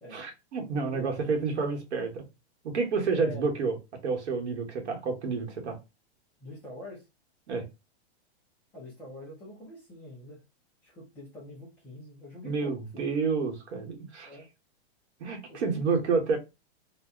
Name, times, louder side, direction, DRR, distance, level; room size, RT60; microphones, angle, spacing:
voice 1, 0.1-2.2 2.6-3.7 4.0-5.8 7.5-7.7 12.4-14.3 15.2-16.4, right 4 dB, 85° right, 1.2 m, -29 dB
voice 2, 3.1-3.5 6.4-7.0 8.7-10.4 10.8-13.0 14.3-14.5 15.5-16.0, left 1 dB, 5° left, 0.5 m, -45 dB
2.7 x 2.2 x 3.6 m
supercardioid pair, 170°, 33 cm